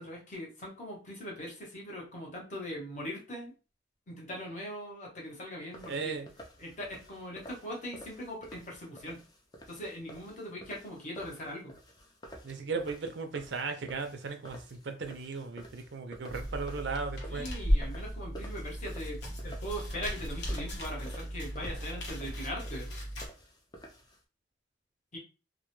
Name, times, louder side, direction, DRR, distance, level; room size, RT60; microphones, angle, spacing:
voice 1, 0.0-3.5 4.1-6.1 6.6-9.3 9.7-11.7 17.2-22.9 25.1-25.2, equal, 40° left, 0.9 m, -41 dB
sound 1, 5.7-24.2, equal, 20° left, 0.4 m, -51 dB
voice 2, 5.9-6.3 12.4-17.5, right 4 dB, 70° right, 0.5 m, -36 dB
sound 2, 16.3-23.3, equal, 70° left, 0.8 m, -35 dB
2.2 x 2.1 x 3.0 m
head